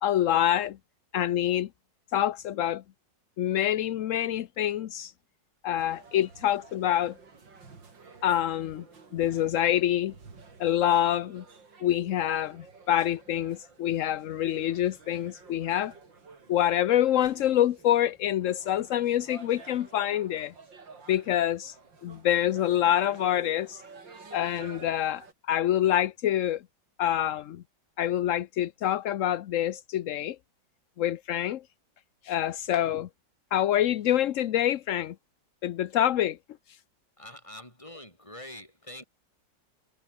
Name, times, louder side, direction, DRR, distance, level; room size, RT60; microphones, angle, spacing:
voice 1, 0.0-0.8 1.1-1.7 2.1-2.8 3.4-5.1 5.6-7.1 8.2-8.8 9.1-10.1 10.6-11.4 11.8-15.9 16.5-20.5 21.1-21.7 22.0-23.8 24.3-26.6 27.0-27.6 28.0-30.4 31.0-31.6 32.2-33.1 33.5-35.1 35.6-36.4, left 11 dB, 65° left, 0.8 m, -26 dB
sound 1, 5.7-25.3, right 4 dB, 85° right, 4.1 m, -52 dB
voice 2, 37.2-39.0, left 1 dB, 15° left, 6.3 m, -45 dB
omnidirectional pair, 2.0 m